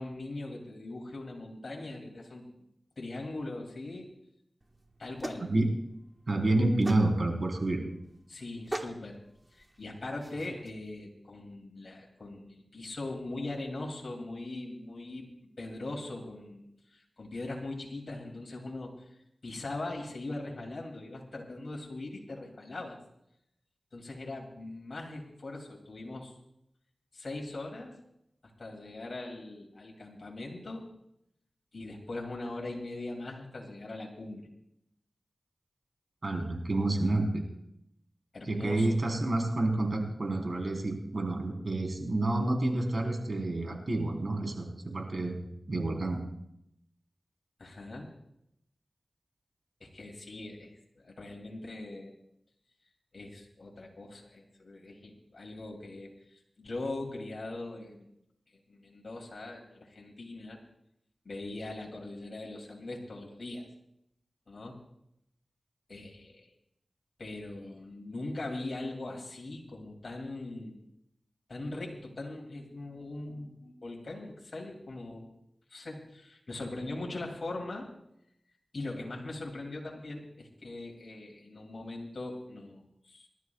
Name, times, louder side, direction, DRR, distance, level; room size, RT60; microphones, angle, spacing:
voice 1, 0.0-2.4 3.0-4.1 5.0-5.5 8.3-9.2 9.5-15.3 15.6-23.0 23.9-26.4 27.1-28.0 28.6-30.9 31.7-34.5 38.3-39.0 47.6-48.1 49.8-52.1 53.1-58.1 58.5-60.6 61.2-63.7 64.5-64.8 65.9-66.5 67.2-70.7 71.5-75.3 75.7-77.9 78.7-83.3, left 2 dB, 70° left, -1 dB, 2.8 m, -41 dB
sound 1, 4.6-10.7, right 1 dB, 25° right, 1.4 m, -43 dB
voice 2, 6.3-7.8 36.2-37.4 38.5-45.4 45.7-46.2, right 2 dB, 65° right, 1 dB, 3.9 m, -29 dB
27.5 x 12.5 x 2.4 m, 0.78 s
cardioid pair, 40°, 0 cm